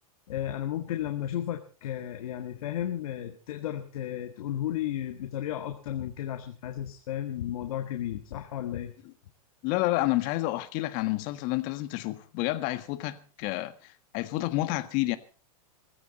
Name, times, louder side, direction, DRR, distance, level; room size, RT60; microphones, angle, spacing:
voice 1, 0.3-8.9, left 11 dB, 70° left, 1.8 m, -33 dB
voice 2, 9.6-15.2, left 17 dB, 45° left, 1.6 m, -29 dB
19.0 x 15.0 x 4.2 m
hypercardioid pair, 130°, 19 cm